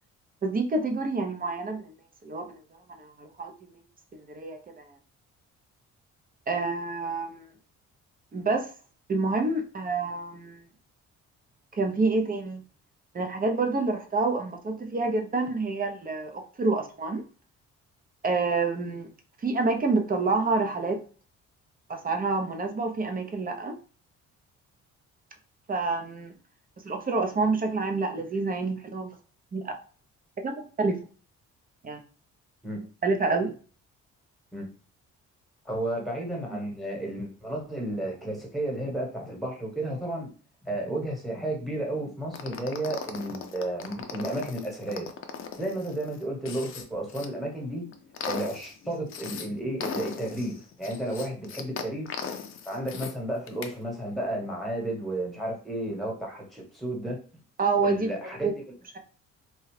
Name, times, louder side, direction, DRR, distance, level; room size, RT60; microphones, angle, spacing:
voice 1, 0.4-1.9 2.2-2.5 3.0-3.5 4.1-4.9 6.5-7.5 8.3-8.7 9.1-10.6 11.7-12.6 13.1-17.2 18.2-19.1 19.4-21.0 21.9-23.7 25.7-26.3 26.8-29.1 29.5-29.7 30.4-31.0 31.8-32.0 33.0-33.5 57.6-58.1 58.4-58.5, right 3 dB, 30° right, 4 dB, 0.6 m, -28 dB
voice 2, 35.6-40.3 40.6-45.1 45.6-47.8 48.2-52.1 52.6-57.2 57.8-58.5, right 1 dB, ahead, -1 dB, 1.2 m, -32 dB
sound 1, 42.3-47.3 47.7-49.5 49.8-53.1 53.5-53.7, left 6 dB, 45° left, 0.5 m, -38 dB
2.8 x 2.3 x 3.1 m, 0.39 s
cardioid pair, 90°, 30 cm